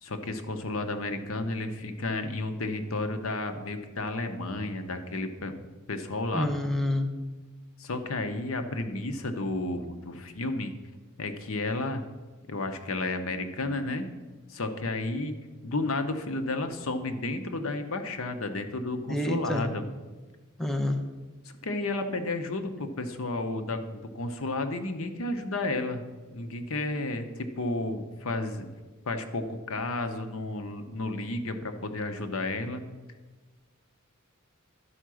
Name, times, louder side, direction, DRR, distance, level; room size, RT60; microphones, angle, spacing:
voice 1, 0.0-6.5 7.8-10.7 11.2-12.0 12.5-14.1 14.5-15.3 15.6-19.8 21.6-26.0 26.3-28.7 29.1-32.8, left 2 dB, 75° left, 7 dB, 0.8 m, -32 dB
voice 2, 6.3-7.1 19.1-19.7 20.6-21.0, left 1 dB, ahead, 4 dB, 0.7 m, -28 dB
11.5 x 4.7 x 6.2 m, 1.3 s
head